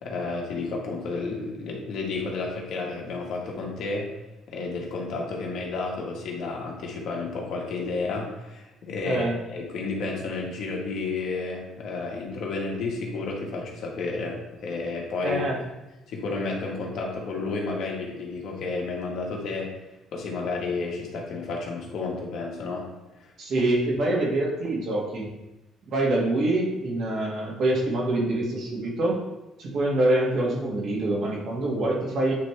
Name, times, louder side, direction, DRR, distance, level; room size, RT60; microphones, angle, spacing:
voice 1, 0.0-4.1 4.5-15.4 16.1-19.7 20.1-22.9 23.2-23.3, left 3 dB, 65° left, -1 dB, 1.5 m, -31 dB
voice 2, 9.0-9.4 15.2-15.6 23.4-25.3 25.9-29.2 29.6-32.3, right 1 dB, 55° right, -3 dB, 1.9 m, -25 dB
8.7 x 3.3 x 3.3 m, 1.0 s
cardioid pair, 120°, 0 cm